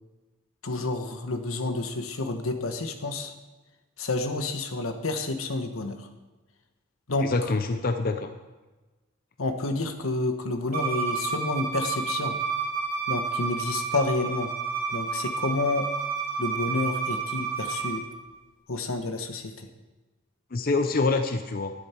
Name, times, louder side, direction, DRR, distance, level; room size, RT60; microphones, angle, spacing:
voice 1, 0.6-3.3 4.0-6.1 7.1-7.3 9.4-12.4 13.1-14.5 14.9-15.9 16.4-18.0 18.7-19.7, left 2 dB, 85° left, 7 dB, 1.2 m, -29 dB
voice 2, 7.2-8.3 20.5-21.7, left 3 dB, 45° left, 7 dB, 0.6 m, -25 dB
Bowed string instrument, 10.7-18.0, right 5 dB, 40° right, 2.8 m, -30 dB
12.0 x 10.5 x 4.5 m, 1.2 s
head